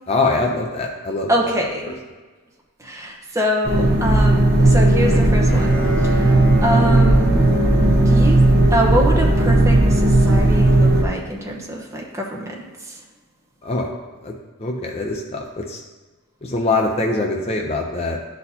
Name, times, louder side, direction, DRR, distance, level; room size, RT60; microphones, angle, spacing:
voice 1, 0.1-1.3 1.8-1.9 13.6-14.3 14.6-15.8 16.4-18.2, left 2 dB, 30° left, 1 dB, 0.5 m, -23 dB
voice 2, 1.3-1.9 2.8-6.4 6.6-7.4 7.8-8.4 8.7-12.6 12.8-13.0, equal, 15° right, -2 dB, 0.9 m, -24 dB
sound 1, 3.6-11.0, right 1 dB, 40° right, 0.9 m, -15 dB
Bowed string instrument, 5.0-9.2, right 3 dB, 55° left, 1.3 m, -31 dB
11.0 x 4.1 x 2.8 m, 1.3 s
head